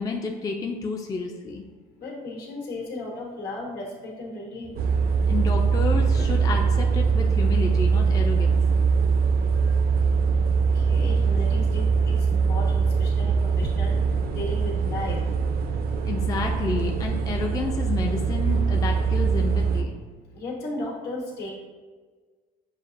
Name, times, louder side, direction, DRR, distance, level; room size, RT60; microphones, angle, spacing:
voice 1, 0.0-1.7 5.3-8.6 16.0-20.0, left 4 dB, 20° left, 1 dB, 0.4 m, -30 dB
voice 2, 2.0-4.8 9.5-9.8 10.7-15.3 20.3-21.5, left 1 dB, 70° left, -2 dB, 1.2 m, -35 dB
sound 1, 4.8-19.8, right 5 dB, 60° right, 0.4 m, -22 dB
6.8 x 2.4 x 2.4 m, 1.4 s
cardioid pair, 110°, 17 cm